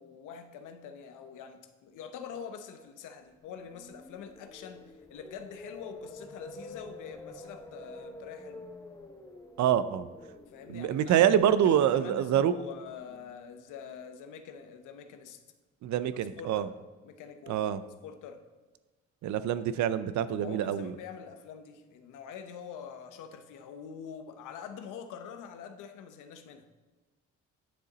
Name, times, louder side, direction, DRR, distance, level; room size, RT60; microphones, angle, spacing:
voice 1, 0.0-8.6 10.5-15.4 16.1-16.7 17.0-17.7 18.0-18.4 20.4-26.7, left 7 dB, 90° left, 8 dB, 0.8 m, -45 dB
sound 1, 3.4-13.5, left 2 dB, 10° left, 0.9 m, -49 dB
voice 2, 9.6-10.1 10.7-12.5 15.8-16.7 17.5-17.8 19.2-20.9, right 10 dB, 70° right, 14 dB, 0.5 m, -26 dB
9.6 x 6.7 x 4.0 m, 1.3 s
cardioid pair, 90°, 30 cm